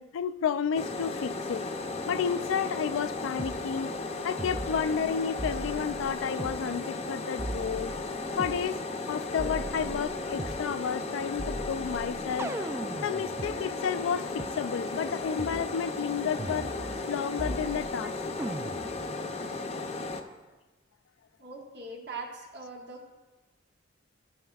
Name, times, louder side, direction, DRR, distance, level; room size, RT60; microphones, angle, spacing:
voice 1, 0.0-1.6 2.1-3.9 4.2-7.9 8.4-8.8 9.1-12.5 13.0-16.7 17.1-18.1, left 7 dB, 85° left, 0.3 m, -31 dB
sound 1, 0.7-20.2, left 3 dB, 35° left, 0.5 m, -35 dB
sound 2, 3.4-3.6 4.4-5.1 5.4-6.6 7.4-8.6 9.4-10.6 11.4-13.5 14.4-14.5 15.4-15.6 16.4-17.1 17.4-18.0 18.4-19.0, right 1 dB, 15° right, 0.3 m, -38 dB
voice 2, 21.4-23.1, right 3 dB, 60° right, 1.5 m, -42 dB
12.0 x 9.0 x 2.3 m
head